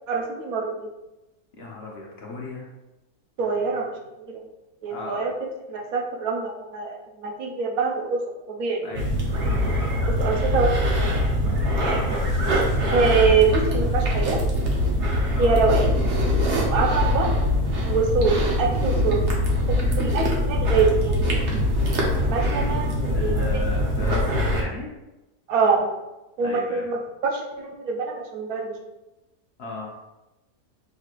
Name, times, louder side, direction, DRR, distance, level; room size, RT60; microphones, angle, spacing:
voice 1, 0.1-0.9 3.4-3.9 4.2-4.4 4.8-5.3 5.7-8.2 8.5-8.8 10.1-11.1 12.9-14.4 15.4-16.0 16.7-17.4 17.9-19.2 19.7-21.4 22.2-23.3 25.5-25.9 26.4-28.7, right 4 dB, 75° right, 1 dB, 1.2 m, -24 dB
voice 2, 1.5-2.7 4.9-5.2 8.8-10.0 11.9-12.3 15.3-15.5 19.8-20.0 23.1-25.0 26.4-27.0 29.6-30.0, left 3 dB, 50° left, -3 dB, 0.8 m, -36 dB
sound 1, 8.9-24.6, left 1 dB, 55° right, 1.1 m, -23 dB
6.4 x 3.1 x 2.5 m, 0.98 s
omnidirectional pair, 1.6 m